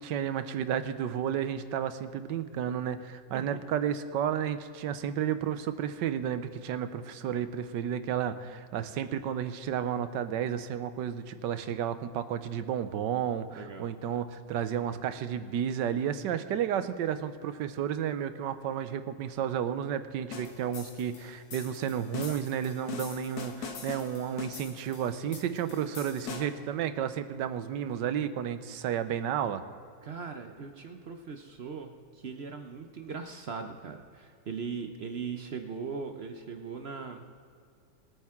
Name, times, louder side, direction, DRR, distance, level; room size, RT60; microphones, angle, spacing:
voice 1, 0.0-29.6, right 9 dB, 80° right, 11 dB, 1.4 m, -32 dB
voice 2, 13.6-13.9 30.0-37.2, right 5 dB, 60° right, 6 dB, 0.6 m, -39 dB
sound 1, 20.3-26.7, left 6 dB, 60° left, 1.5 m, -42 dB
22.5 x 8.9 x 3.6 m, 2.3 s
omnidirectional pair, 1.9 m